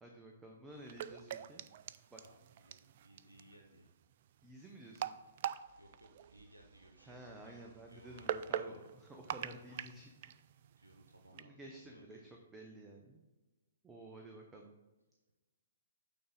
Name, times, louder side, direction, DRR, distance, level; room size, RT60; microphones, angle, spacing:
voice 1, 0.0-1.6 2.1-2.2 4.4-5.1 7.0-10.3 11.3-13.2 13.8-14.7, right 1 dB, 10° right, 1 dB, 0.7 m, -52 dB
sound 1, 0.7-11.4, right 10 dB, 45° right, 0.3 m, -45 dB
voice 2, 2.2-3.9 5.8-8.8 10.8-12.2, right 1 dB, 90° right, 3 dB, 0.9 m, -62 dB
8.6 x 4.0 x 4.0 m, 1.1 s
figure-of-eight pair, 120°, 0 cm